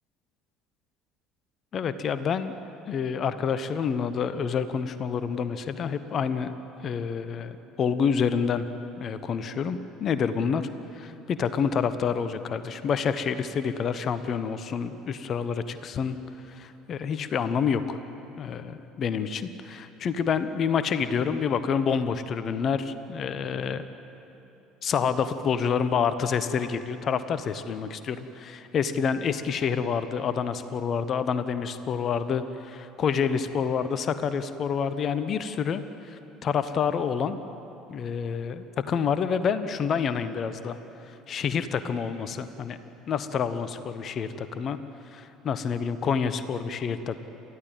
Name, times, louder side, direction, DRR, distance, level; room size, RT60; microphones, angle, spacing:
voice 1, 1.7-2.6 2.9-6.5 6.8-8.6 9.0-10.7 10.9-16.2 16.5-18.0 18.4-23.8 24.8-37.4 37.9-40.8 41.3-42.8 43.1-44.8 45.1-47.2, left 6 dB, 40° left, 12 dB, 1.1 m, -28 dB
29.0 x 14.5 x 8.9 m, 2.9 s
figure-of-eight pair, 60°, 0 cm